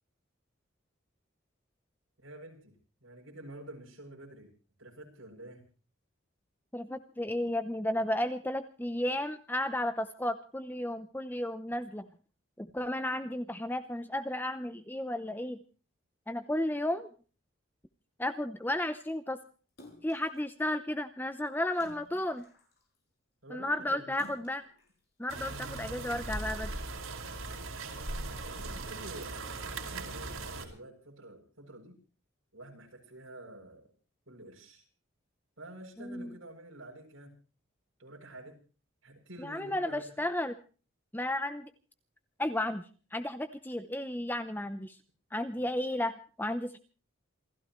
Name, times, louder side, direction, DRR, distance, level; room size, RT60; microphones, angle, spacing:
voice 1, 2.2-2.7 3.0-4.5 4.8-5.6 23.4-24.2 28.2-32.0 32.5-33.9 34.3-34.9 35.6-37.3 38.0-38.6 39.0-40.3 45.5-45.7, right 1 dB, 70° right, 0 dB, 7.5 m, -49 dB
voice 2, 6.7-12.1 12.6-15.6 16.3-17.1 18.2-19.4 20.0-22.5 23.5-24.6 25.2-26.7 36.0-36.3 39.4-40.5 41.1-41.7 42.4-42.8 43.1-45.0 45.3-46.8, left 1 dB, 10° left, 10 dB, 0.7 m, -33 dB
Splash splatter, 19.8-20.4 21.7-23.0 24.1-24.9 25.5-25.6, left 1 dB, 50° left, 6.7 m, -54 dB
sound 1, 25.3-30.7, right 3 dB, 85° right, 4.9 m, -39 dB
28.0 x 15.5 x 3.1 m, 0.38 s
head